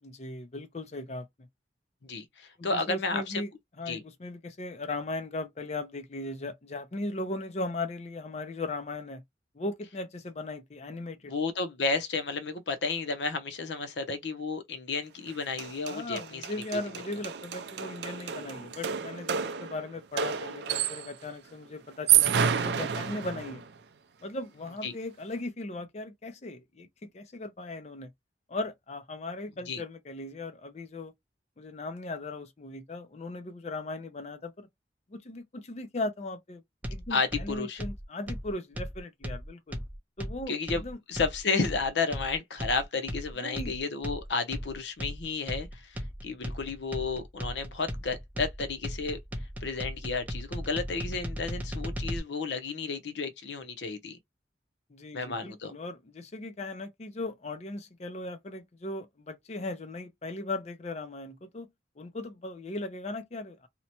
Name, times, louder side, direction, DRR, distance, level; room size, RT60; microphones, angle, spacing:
voice 1, 0.0-1.5 2.6-3.5 3.8-9.2 9.5-11.3 15.9-23.6 24.2-28.1 28.5-31.1 31.6-34.7 35.1-36.6 36.9-39.8 40.2-41.0 43.4-43.8 54.9-61.7 62.0-63.7, left 2 dB, 40° left, 0.5 m, -38 dB
voice 2, 2.0-3.4 3.9-4.0 11.3-16.5 24.8-25.0 29.7-29.8 37.1-37.8 40.5-40.8 41.1-49.2 49.6-54.2 55.1-55.7, left 4 dB, 75° left, 0.7 m, -32 dB
sound 1, 15.3-15.4 15.6-21.2 21.9-23.7, right 9 dB, 65° right, 0.4 m, -29 dB
sound 2, 36.8-52.2, equal, 10° right, 0.5 m, -37 dB
2.8 x 2.1 x 2.8 m
head